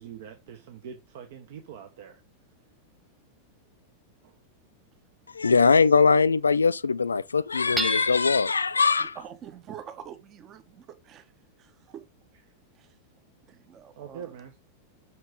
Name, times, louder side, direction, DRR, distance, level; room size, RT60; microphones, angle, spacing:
voice 1, 0.0-2.2 4.2-4.3 14.0-14.6, right 8 dB, 55° right, 1.2 m, -43 dB
voice 2, 5.3-9.2, left 5 dB, 75° left, 0.3 m, -21 dB
Hammer / Chink clink, 7.8-8.6, right 2 dB, 5° right, 0.7 m, -31 dB
voice 3, 9.0-11.3 11.6-12.0 12.7-12.9 13.5-14.3, right 9 dB, 30° right, 1.1 m, -45 dB
6.1 x 6.0 x 5.3 m
figure-of-eight pair, 90°, 0 cm